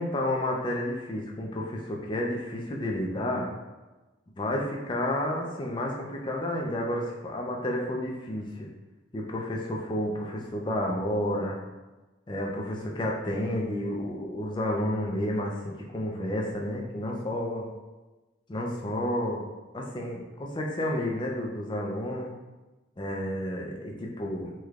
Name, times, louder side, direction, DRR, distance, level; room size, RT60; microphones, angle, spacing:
voice 1, 0.0-3.5 4.3-8.7 9.1-11.6 12.3-17.7 18.5-19.4 19.7-22.3 23.0-24.5, left 1 dB, 25° left, -1 dB, 0.4 m, -31 dB
3.3 x 3.1 x 2.4 m, 1.1 s
head